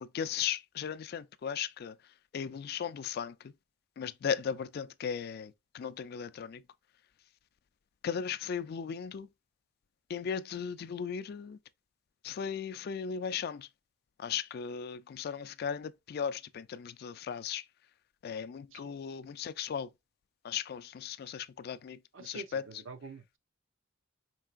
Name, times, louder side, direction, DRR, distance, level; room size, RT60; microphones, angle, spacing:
voice 1, 0.0-3.5 4.0-6.6 8.0-9.3 10.1-11.6 12.2-13.7 14.2-17.7 18.2-19.9 20.4-22.7, left 7 dB, 50° left, 0.3 m, -37 dB
voice 2, 22.1-23.4, right 3 dB, 80° right, 0.6 m, -46 dB
4.6 x 3.2 x 2.4 m
head